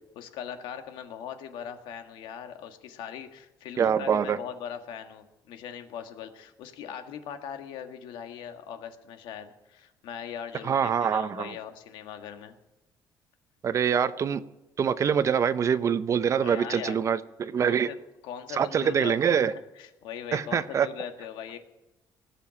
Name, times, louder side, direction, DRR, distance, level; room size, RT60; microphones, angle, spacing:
voice 1, 0.2-12.6 16.4-17.0 17.6-18.0 18.2-19.2 19.4-21.6, left 8 dB, 85° left, 7 dB, 1.7 m, -40 dB
voice 2, 3.8-4.4 10.6-11.5 13.6-14.4 14.8-17.9 18.6-19.5 20.3-20.9, right 7 dB, 40° right, 13 dB, 0.8 m, -25 dB
19.0 x 7.0 x 9.7 m, 0.98 s
cardioid pair, 130°, 8 cm